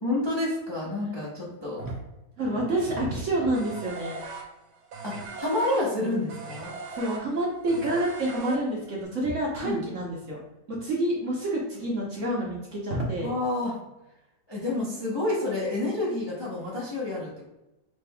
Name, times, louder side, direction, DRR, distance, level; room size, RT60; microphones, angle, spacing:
voice 1, 0.0-1.8 5.0-6.7 9.6-9.8 13.2-13.7 14.5-17.5, left 2 dB, 20° left, -6 dB, 0.7 m, -29 dB
voice 2, 2.4-4.2 6.9-10.4 10.7-13.3, right 1 dB, 55° right, -3 dB, 1.0 m, -28 dB
sound 1, 3.5-9.0, right 4 dB, 75° right, 1.3 m, -39 dB
5.1 x 3.3 x 2.2 m, 0.96 s
omnidirectional pair, 1.9 m